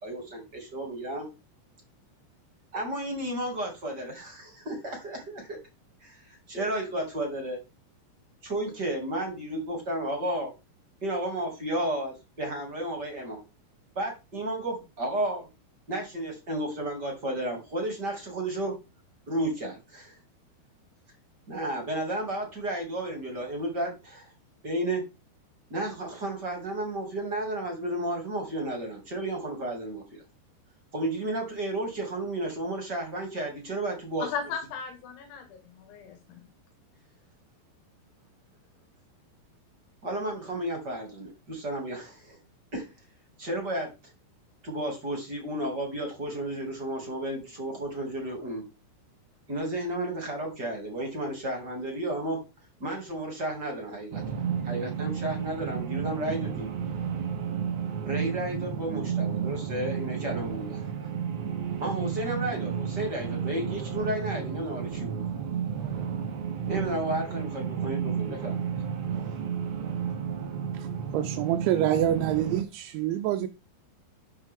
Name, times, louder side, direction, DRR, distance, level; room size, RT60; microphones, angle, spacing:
voice 1, 0.0-1.3 2.7-5.6 6.0-7.6 8.4-10.5 11.0-13.4 13.9-15.5 15.9-18.7 19.3-20.2 21.5-24.3 24.6-25.0 25.7-30.2 30.9-34.3 40.0-42.4 42.7-42.9 43.4-43.9 44.6-48.6 49.5-52.4 52.8-56.7 58.0-61.1 61.8-65.2 66.6-68.6, right 1 dB, 30° right, 2.2 m, -32 dB
voice 2, 34.2-36.5, left 6 dB, 90° left, 4.4 m, -36 dB
sound 1, 54.1-72.6, right 7 dB, 70° right, 1.6 m, -32 dB
voice 3, 71.1-73.5, right 12 dB, 85° right, 3.1 m, -26 dB
12.0 x 6.2 x 3.7 m
omnidirectional pair, 5.2 m